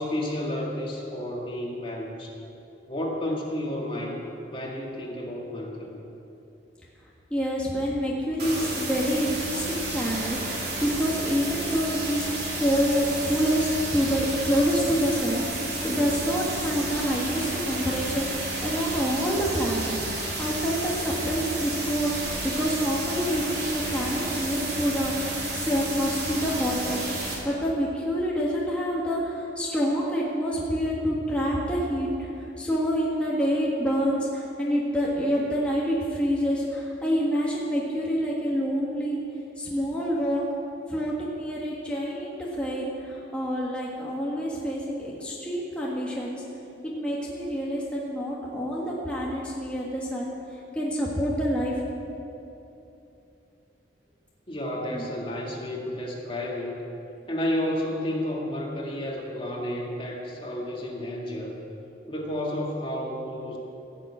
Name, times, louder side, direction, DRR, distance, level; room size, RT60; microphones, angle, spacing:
voice 1, 0.0-2.4 2.9-6.0 54.5-56.8 57.3-61.6 62.1-63.6, left 1 dB, 30° left, -2 dB, 2.0 m, -31 dB
voice 2, 7.3-12.3 12.5-39.2 39.6-40.4 40.9-46.4 46.8-50.3 50.7-51.7 54.9-55.1, equal, 5° left, -5 dB, 1.7 m, -27 dB
sound 1, 8.4-27.3, right 2 dB, 65° right, 3.6 m, -32 dB
16.5 x 7.0 x 8.7 m, 2.9 s
head